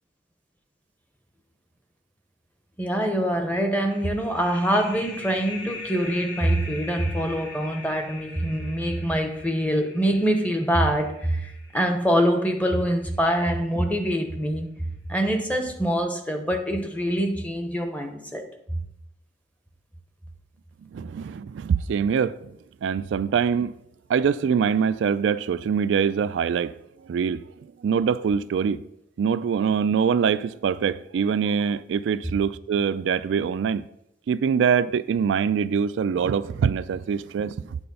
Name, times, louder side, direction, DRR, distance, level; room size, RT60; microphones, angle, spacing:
voice 1, 2.8-14.7 15.1-18.5, equal, 10° left, 0.8 m, -24 dB
sound 1, 3.9-13.2, left 2 dB, 65° left, 1.6 m, -42 dB
voice 2, 20.9-22.5 22.8-23.7 24.1-26.8 27.1-27.4 27.8-28.8 29.2-33.8 34.3-37.8, right 7 dB, 85° right, 0.3 m, -24 dB
8.8 x 4.2 x 5.4 m
head